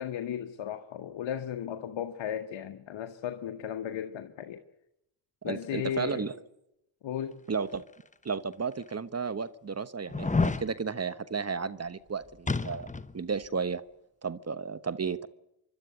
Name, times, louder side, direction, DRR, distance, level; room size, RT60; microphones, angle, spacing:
voice 1, 0.0-4.6 5.4-6.3 7.0-7.4, left 9 dB, 70° left, 1.3 m, -35 dB
voice 2, 5.4-6.3 7.5-7.8 8.2-12.9 13.1-13.8 14.2-15.3, right 5 dB, 30° right, 1.1 m, -33 dB
sound 1, 8.1-8.2 8.9-9.0 10.1-10.7 12.5-13.1 13.4-13.5, left 3 dB, 15° left, 1.1 m, -28 dB
25.5 x 12.0 x 9.6 m
supercardioid pair, 50°, 48 cm